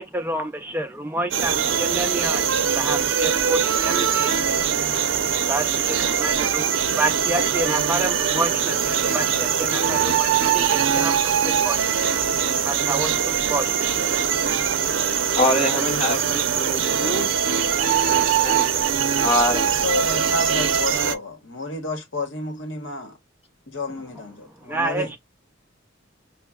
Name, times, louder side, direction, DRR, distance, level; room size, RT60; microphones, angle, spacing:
voice 1, 0.0-14.8 24.6-25.2, right 2 dB, 10° right, 0.3 m, -30 dB
sound 1, 1.3-21.1, right 7 dB, 75° right, 0.5 m, -22 dB
voice 2, 15.4-17.3 18.4-18.7 19.2-19.6, left 1 dB, 30° left, 1.0 m, -24 dB
voice 3, 19.6-23.2 23.7-25.1, left 2 dB, 70° left, 1.0 m, -30 dB
5.8 x 2.1 x 2.3 m
head